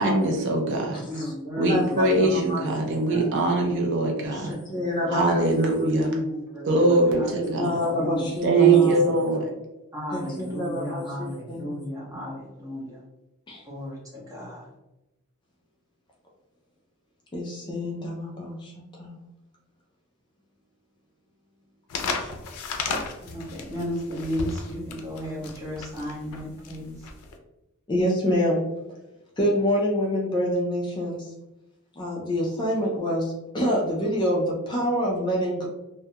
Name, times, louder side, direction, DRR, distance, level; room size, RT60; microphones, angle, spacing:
voice 1, 0.0-1.0 1.6-4.6 5.1-6.1 6.7-7.8 8.4-9.5, right 3 dB, 55° right, 0 dB, 0.4 m, -22 dB
voice 2, 1.0-3.2 3.6-5.2 5.8-8.3 8.6-8.9 9.9-13.0 13.6-14.7 23.2-27.1, left 1 dB, 15° right, -6 dB, 0.8 m, -34 dB
voice 3, 1.6-3.2 4.5-5.4 7.6-9.0 10.1-11.7 13.5-13.6 17.3-19.1 22.1-22.3 27.9-28.6 29.4-31.3 32.0-35.7, equal, 20° left, -2 dB, 0.4 m, -27 dB
sound 1, 21.9-27.3, left 4 dB, 90° left, 0.4 m, -33 dB
2.2 x 2.1 x 2.8 m, 0.94 s
head